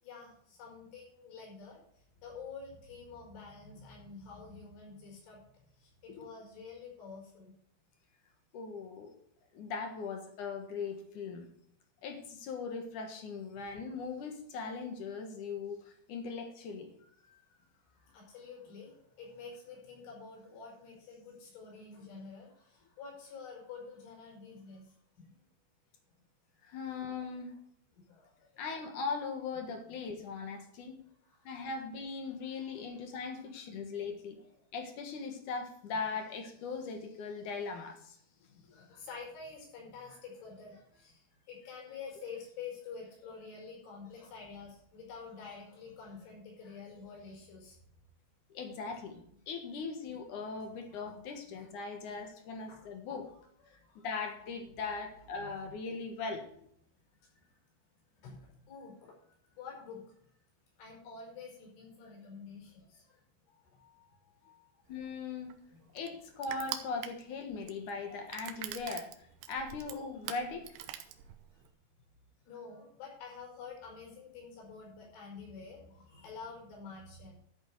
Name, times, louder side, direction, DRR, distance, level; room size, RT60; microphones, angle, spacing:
voice 1, 0.0-5.4 5.8-7.5 13.7-14.0 17.2-25.4 27.0-27.1 28.0-28.5 29.6-30.0 31.3-31.7 32.6-32.7 34.4-34.5 38.7-47.8 51.0-51.2 51.5-51.7 52.0-52.2 52.7-53.1 53.7-54.1 55.4-55.7 57.3-57.6 58.2-59.2 59.5-60.0 60.8-63.2 63.5-64.7 65.7-66.1 71.5-71.6 72.4-77.4, left 5 dB, 80° left, -1 dB, 7.6 m, -49 dB
voice 2, 8.5-9.1 9.5-11.5 12.0-16.9 26.6-27.6 28.6-31.0 31.4-34.4 34.7-38.2 48.5-53.3 53.7-56.5 64.9-65.5 65.9-69.1 69.5-70.7, left 4 dB, 60° left, 4 dB, 2.2 m, -39 dB
Crushing, 64.9-71.7, right 12 dB, 90° right, 3.4 m, -44 dB
13.5 x 8.3 x 4.7 m, 0.69 s
omnidirectional pair, 5.5 m